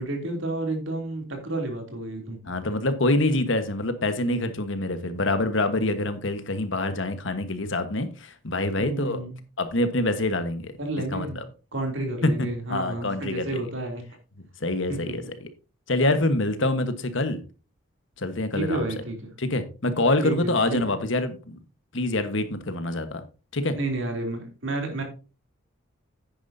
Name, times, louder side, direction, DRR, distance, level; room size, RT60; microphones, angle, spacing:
voice 1, 0.0-2.5 8.8-9.4 10.8-11.4 11.7-14.0 14.9-15.1 18.5-19.3 20.2-21.0 23.7-25.0, right 2 dB, 65° right, 3 dB, 3.0 m, -31 dB
voice 2, 2.4-9.2 9.6-10.7 11.1-11.4 12.2-13.6 14.6-15.5 15.9-17.4 18.2-18.9 19.4-21.6 21.9-23.2 23.5-23.7, left 2 dB, 65° left, 9 dB, 1.3 m, -26 dB
10.0 x 9.9 x 2.7 m, 0.33 s
head